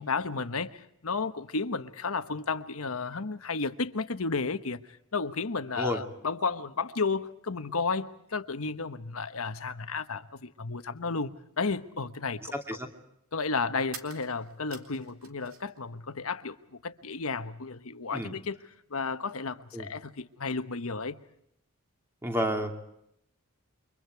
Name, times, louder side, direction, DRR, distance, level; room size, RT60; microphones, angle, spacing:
voice 1, 0.0-4.8 5.1-12.5 13.3-16.6 16.8-18.6 18.9-21.2, left 4 dB, 75° left, 1.2 m, -33 dB
voice 2, 12.5-12.9 18.1-18.3 19.7-19.9 22.2-22.8, equal, 10° right, 2.7 m, -30 dB
sound 1, 13.9-15.8 16.1-17.0, right 6 dB, 70° right, 2.7 m, -48 dB
29.0 x 24.5 x 4.7 m
head